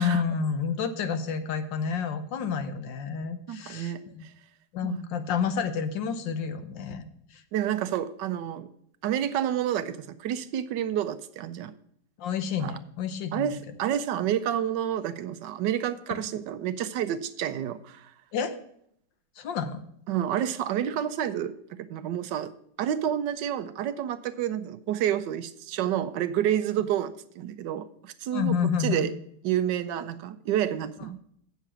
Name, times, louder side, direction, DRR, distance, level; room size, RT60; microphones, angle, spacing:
voice 1, 0.0-4.2 4.7-7.0 7.3-7.4 12.2-13.6 18.3-18.6 19.4-19.8 28.3-29.1, left 6 dB, 75° left, 9 dB, 1.5 m, -29 dB
voice 2, 3.5-4.3 4.8-5.1 7.5-8.7 9.0-11.7 12.6-12.8 13.3-18.1 20.1-22.5 22.8-29.1 29.4-31.2, right 10 dB, 75° right, 12 dB, 1.2 m, -29 dB
8.3 x 6.7 x 6.0 m, 0.68 s
omnidirectional pair, 2.0 m